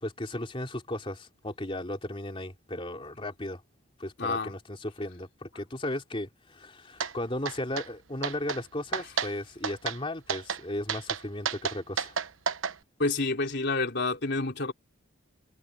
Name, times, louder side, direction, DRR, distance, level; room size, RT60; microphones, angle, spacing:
voice 1, 0.0-3.6 4.0-12.2, left 1 dB, 25° left, 3.2 m, -35 dB
voice 2, 4.2-4.5 13.0-14.7, left 3 dB, 55° left, 3.4 m, -28 dB
sound 1, 7.0-7.1 7.5-7.9 8.2-8.6 8.9-9.3 9.6-10.0 10.3-10.6 10.9-12.7, right 6 dB, 70° right, 1.0 m, -31 dB
head